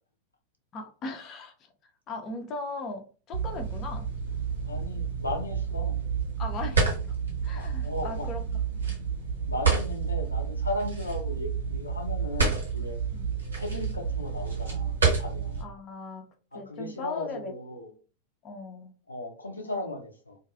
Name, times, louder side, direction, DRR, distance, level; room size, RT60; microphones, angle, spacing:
voice 1, 0.7-1.5 2.1-4.1 6.4-6.9 7.4-8.4 8.7-9.1 13.1-13.4 15.6-16.3 16.5-17.5 18.4-18.9, left 3 dB, 30° left, 4 dB, 0.5 m, -38 dB
sound 1, 3.3-15.6, right 5 dB, 80° right, 1.0 m, -29 dB
voice 2, 4.6-6.0 7.5-8.3 9.5-13.0 13.5-15.7 16.5-17.9 19.1-20.4, left 2 dB, 80° left, 2 dB, 0.5 m, -36 dB
2.6 x 2.3 x 2.4 m, 0.37 s
figure-of-eight pair, 90°, 0 cm